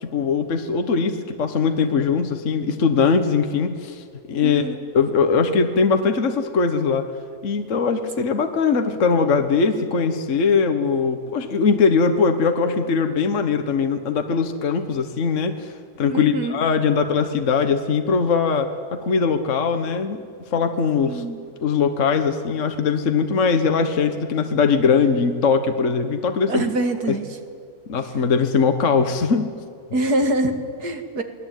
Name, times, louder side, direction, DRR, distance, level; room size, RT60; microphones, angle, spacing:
voice 1, 0.0-4.6 4.9-7.1 7.4-15.7 16.0-20.2 20.5-21.2 21.6-26.7 27.9-29.5, left 5 dB, 50° left, 7 dB, 1.6 m, -21 dB
voice 2, 4.4-4.8 7.9-8.3 16.0-16.6 21.0-21.4 26.5-27.3 29.9-31.2, right 1 dB, 75° right, 6 dB, 2.8 m, -25 dB
28.0 x 20.5 x 9.2 m, 2.2 s
omnidirectional pair, 1.7 m